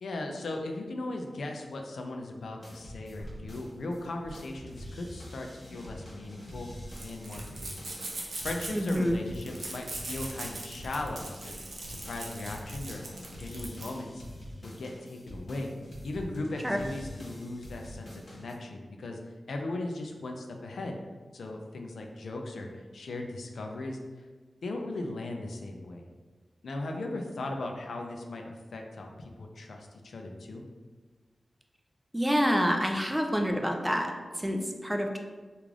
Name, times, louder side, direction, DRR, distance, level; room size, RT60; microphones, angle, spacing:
voice 1, 0.0-6.7 7.0-8.0 8.4-11.6 11.9-13.0 13.4-14.2 14.6-15.7 16.0-19.2 19.5-20.9 21.3-24.0 24.6-26.1 26.6-30.6, left 2 dB, 90° left, 2 dB, 0.4 m, -38 dB
sound 1, 2.6-4.0 4.3-18.5, left 1 dB, 45° left, 1.0 m, -45 dB
sound 2, 3.2-14.0, right 2 dB, 65° right, 0.6 m, -42 dB
voice 2, 8.7-9.2 16.6-16.8 32.1-35.2, equal, 5° right, 3 dB, 0.3 m, -27 dB
3.2 x 2.4 x 3.6 m, 1.4 s
wide cardioid pair, 105°, 0 cm